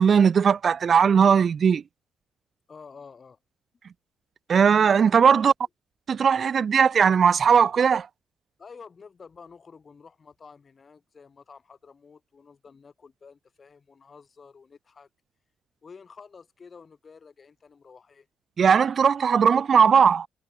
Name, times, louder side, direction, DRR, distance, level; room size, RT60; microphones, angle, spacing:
voice 1, 0.0-1.8 4.5-5.5 6.1-8.1 18.6-20.3, right 7 dB, 50° right, 0.5 m, -18 dB
voice 2, 2.7-3.4 5.2-5.4 8.6-15.1 15.8-18.3, left 5 dB, 40° left, 7.2 m, -49 dB
cardioid pair, 90°, 0 cm